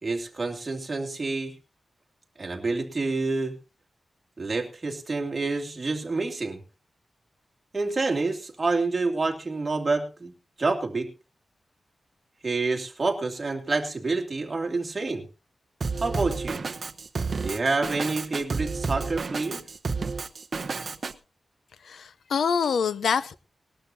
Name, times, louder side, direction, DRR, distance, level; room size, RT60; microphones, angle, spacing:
voice 1, 0.0-1.5 2.4-3.5 4.4-6.6 7.7-10.3 10.6-11.1 12.4-15.2 16.0-16.6 17.4-19.6, right 3 dB, 30° right, 2.6 m, -28 dB
Drum kit, 15.8-21.1, right 4 dB, 50° right, 0.8 m, -31 dB
voice 2, 21.8-23.3, left 6 dB, 90° left, 0.6 m, -25 dB
20.0 x 12.0 x 2.7 m
wide cardioid pair, 115°, 0 cm